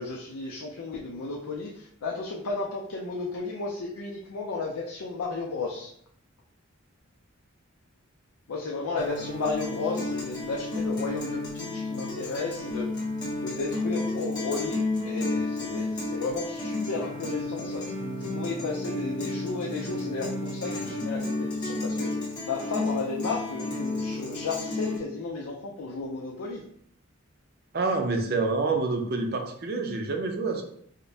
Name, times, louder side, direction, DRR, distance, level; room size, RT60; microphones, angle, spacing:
voice 1, 0.0-5.9 8.5-12.9 13.4-17.8 18.3-22.1 22.4-26.6, left 3 dB, 90° left, -2 dB, 0.5 m, -33 dB
Guitar, 9.0-25.0, left 2 dB, 20° left, 1.0 m, -32 dB
voice 2, 27.7-30.6, right 3 dB, 45° right, 4 dB, 0.5 m, -27 dB
4.9 x 2.1 x 2.7 m, 0.65 s
head